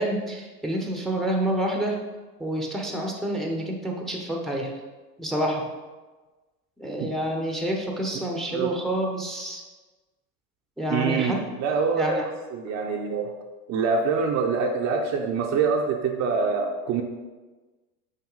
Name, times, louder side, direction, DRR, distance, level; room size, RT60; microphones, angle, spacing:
voice 1, 0.0-2.0 2.4-4.7 5.2-5.6 6.8-9.6 10.8-11.4 11.9-12.2, right 1 dB, ahead, 1 dB, 0.8 m, -28 dB
voice 2, 10.9-12.1 12.5-13.3 13.7-17.0, right 5 dB, 35° right, 2 dB, 0.7 m, -25 dB
6.3 x 4.2 x 3.9 m, 1.2 s
hypercardioid pair, 95°, 48 cm